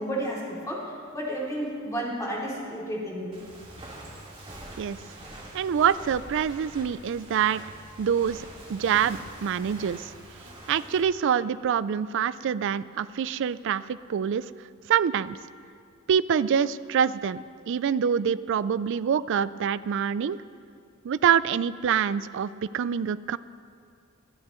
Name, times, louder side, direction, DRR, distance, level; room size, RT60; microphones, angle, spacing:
voice 1, 0.0-3.4, right 1 dB, 15° left, -5 dB, 2.9 m, -32 dB
Walk footsteps, 3.3-11.0, right 1 dB, 25° right, 2.4 m, -44 dB
voice 2, 5.5-7.6 8.0-10.1 10.7-14.4 14.9-15.4 16.1-20.4 21.0-23.4, right 8 dB, 60° right, 16 dB, 0.3 m, -25 dB
25.5 x 9.5 x 3.1 m, 2.3 s
head